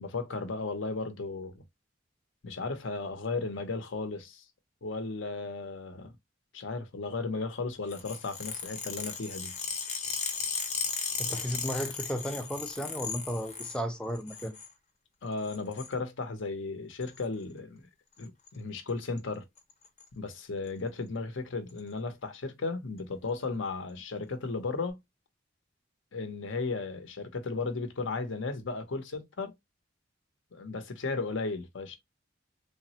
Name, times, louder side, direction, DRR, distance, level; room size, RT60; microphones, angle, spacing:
voice 1, 0.0-1.6 2.4-4.4 4.8-6.1 6.5-9.6 15.2-17.8 18.2-19.5 20.1-25.0 26.1-29.5 30.5-32.0, left 3 dB, 70° left, 0.6 m, -35 dB
sound 1, 7.9-13.8 14.1-14.7 15.4-15.9 17.0-17.2 18.2-18.5 18.8-18.9 19.2-19.3 19.6-20.0 20.7-20.8 21.7-21.8, left 6 dB, 35° left, 0.7 m, -36 dB
voice 2, 11.2-14.5, equal, 5° left, 0.4 m, -34 dB
3.3 x 2.0 x 2.7 m
head